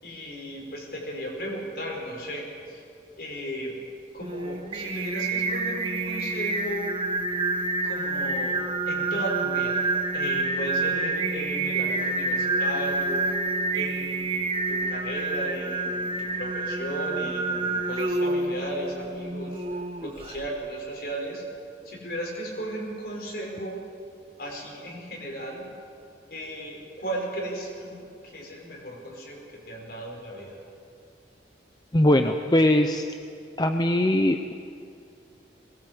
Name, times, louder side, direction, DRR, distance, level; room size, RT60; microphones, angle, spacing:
voice 1, 0.0-2.8 3.2-3.8 4.1-6.9 7.8-8.6 8.9-9.8 10.1-19.6 20.0-21.4 21.8-23.8 24.4-25.7 26.3-28.0 28.3-30.6, right 1 dB, 60° left, -1 dB, 5.8 m, -35 dB
Singing, 4.2-20.5, right 3 dB, 30° right, 1.3 m, -28 dB
voice 2, 31.9-33.0 33.6-34.5, left 1 dB, 25° left, 6 dB, 0.7 m, -21 dB
21.5 x 21.0 x 7.9 m, 2.5 s
head